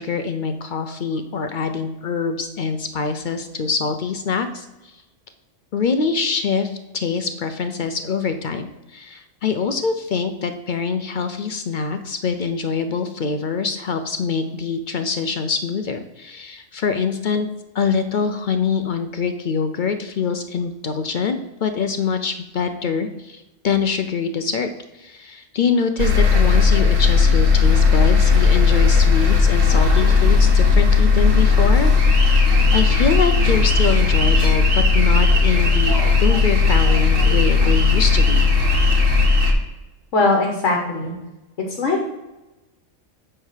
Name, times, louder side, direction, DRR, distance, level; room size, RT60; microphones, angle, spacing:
voice 1, 0.0-5.0 5.7-17.5 17.7-24.7 24.9-32.4 32.7-35.9 36.2-38.5, left 5 dB, 60° left, 8 dB, 0.5 m, -24 dB
sound 1, 26.0-39.5, left 4 dB, 90° right, 1.5 m, -16 dB
voice 2, 40.1-41.1 41.7-42.1, left 3 dB, 75° left, 1 dB, 1.4 m, -20 dB
8.8 x 3.4 x 6.4 m, 1.0 s
omnidirectional pair, 1.3 m